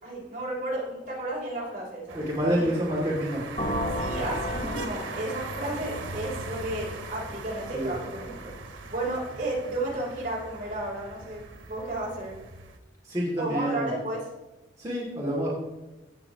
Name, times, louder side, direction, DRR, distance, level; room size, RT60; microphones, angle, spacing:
voice 1, 0.0-2.8 4.0-8.5 8.9-11.4 11.7-12.3 13.4-14.2, right 1 dB, 40° right, -5 dB, 3.4 m, -33 dB
voice 2, 2.1-3.4 7.7-7.9 13.0-13.9 14.8-15.5, equal, 15° right, -8 dB, 2.4 m, -28 dB
sound 1, 2.1-12.8, right 3 dB, 90° right, 1.1 m, -40 dB
sound 2, 3.6-7.3, equal, 40° left, 1.0 m, -33 dB
16.5 x 6.7 x 2.9 m, 1.1 s
head